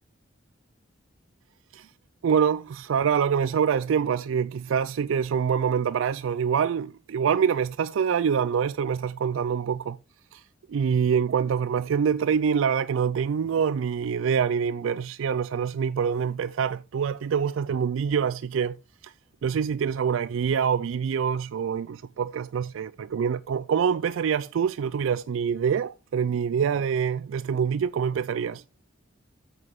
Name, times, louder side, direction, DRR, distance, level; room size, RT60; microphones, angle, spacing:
voice 1, 2.2-10.0 10.3-10.4 10.7-18.8 19.0-19.1 19.4-28.6, right 7 dB, 90° right, 0.3 m, -25 dB
8.9 x 6.6 x 3.5 m
head